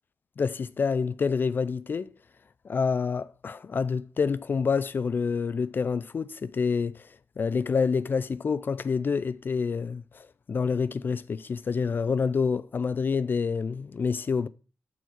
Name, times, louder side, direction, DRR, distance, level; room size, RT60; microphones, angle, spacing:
voice 1, 0.4-2.1 2.6-7.1 7.4-14.5, left 5 dB, 40° left, 0.3 m, -27 dB
12.5 x 4.5 x 4.3 m
wide cardioid pair, 155°, 5 cm